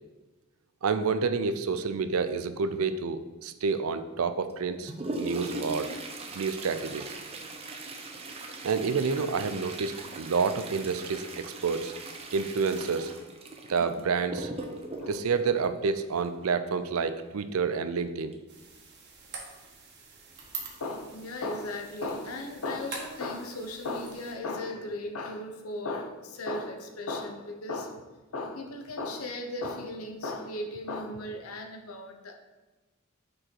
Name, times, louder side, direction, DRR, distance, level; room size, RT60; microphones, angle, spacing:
voice 1, 0.8-5.9 6.3-7.1 8.6-11.9 12.3-13.1 13.7-14.5 15.1-18.3, right 5 dB, 85° right, 11 dB, 0.5 m, -29 dB
Toilet flush, 4.5-16.5 18.3-18.4 18.8-18.9 19.6-19.7 20.4-20.6 21.1-21.2, right 2 dB, 30° right, 0.7 m, -40 dB
voice 2, 13.7-14.1 15.0-15.2 20.8-28.0 28.3-32.3, left 2 dB, 90° left, 4 dB, 0.8 m, -36 dB
sound 1, 18.5-24.3, right 5 dB, 55° right, 1.4 m, -45 dB
6.3 x 4.8 x 4.5 m, 1.2 s
head